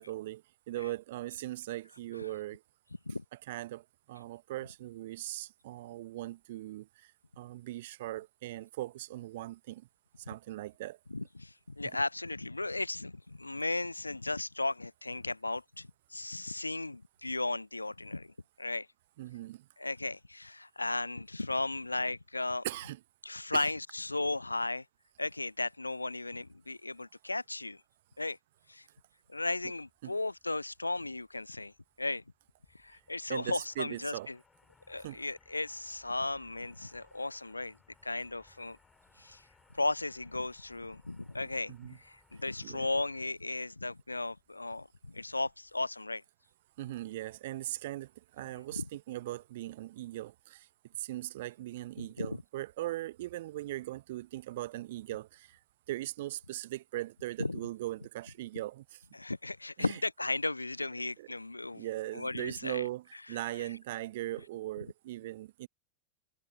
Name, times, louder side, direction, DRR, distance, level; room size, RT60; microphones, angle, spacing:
voice 1, 0.0-2.6 3.5-9.9 10.3-11.0 19.2-19.7 22.6-23.0 23.5-23.7 30.0-30.1 33.3-34.3 35.0-35.2 41.7-42.0 42.6-42.9 46.8-50.7 51.0-55.6 55.9-59.0 59.9-60.0 61.2-61.3 61.7-65.7, right 15 dB, 55° right, 1.2 m, -39 dB
voice 2, 11.1-18.9 19.8-22.6 23.2-24.8 25.2-27.8 28.2-28.4 28.7-28.9 29.3-32.2 32.7-34.4 34.9-37.8 38.0-38.8 39.2-39.4 39.7-46.2 48.7-48.9 52.0-52.4 57.4-57.6 59.1-61.9 62.1-62.9 63.3-63.7, left 2 dB, 85° left, 0.3 m, -35 dB
sound 1, 29.4-45.9, left 5 dB, 15° left, 4.0 m, -68 dB
figure-of-eight pair, 90°, 0 cm